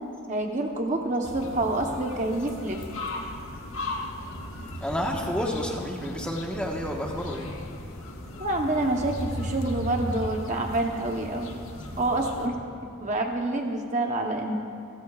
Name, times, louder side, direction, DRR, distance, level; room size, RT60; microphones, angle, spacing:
voice 1, 0.3-2.8 8.4-11.6 12.0-12.5 13.0-14.6, right 2 dB, 30° right, 1 dB, 0.9 m, -27 dB
sound 1, 1.2-12.5, left 1 dB, 65° left, 1.4 m, -37 dB
voice 2, 4.0-8.5, equal, 5° left, -1 dB, 1.2 m, -32 dB
29.5 x 14.0 x 2.4 m, 2.6 s
head